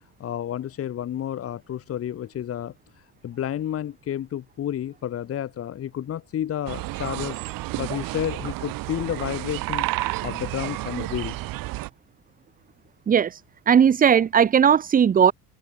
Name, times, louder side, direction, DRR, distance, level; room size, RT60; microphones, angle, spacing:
voice 1, 0.0-7.4 7.8-9.9 10.2-11.5, left 10 dB, 40° left, 2.6 m, -31 dB
sound 1, 6.7-11.9, right 19 dB, 65° right, 3.2 m, -31 dB
voice 2, 13.1-13.4 13.7-15.3, right 8 dB, 25° right, 0.8 m, -17 dB
cardioid pair, 145°, 37 cm